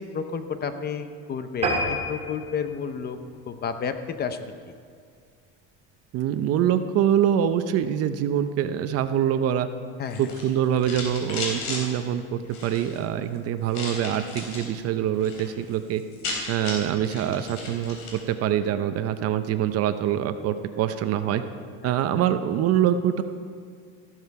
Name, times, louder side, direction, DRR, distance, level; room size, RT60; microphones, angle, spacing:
voice 1, 0.0-3.2 3.5-4.7 10.0-10.3 21.8-21.9, left 6 dB, 30° left, 9 dB, 0.6 m, -31 dB
sound 1, 1.6-4.4 4.8-5.0 5.5-5.6 5.9-6.0 6.2-6.3, right 1 dB, 20° right, 2.3 m, -30 dB
voice 2, 6.1-9.7 10.2-16.0 16.5-21.4 21.8-23.2, right 10 dB, 45° right, 10 dB, 0.6 m, -24 dB
sound 2, 10.0-11.8 12.4-13.0 13.7-14.7 15.1-15.5 15.7-15.8 16.0-18.2, left 3 dB, 55° left, 3.8 m, -35 dB
14.0 x 12.5 x 4.7 m, 2.1 s
cardioid pair, 155°, 35 cm